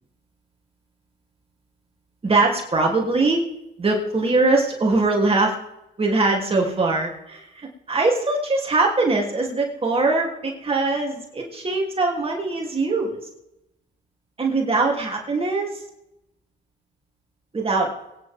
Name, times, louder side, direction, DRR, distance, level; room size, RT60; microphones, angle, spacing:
voice 1, 2.2-3.4 3.8-5.5 6.0-13.2 14.4-15.7 17.5-17.9, right 3 dB, 30° right, -1 dB, 3.3 m, -22 dB
24.0 x 10.0 x 3.7 m, 0.87 s
cardioid pair, 90°, 20 cm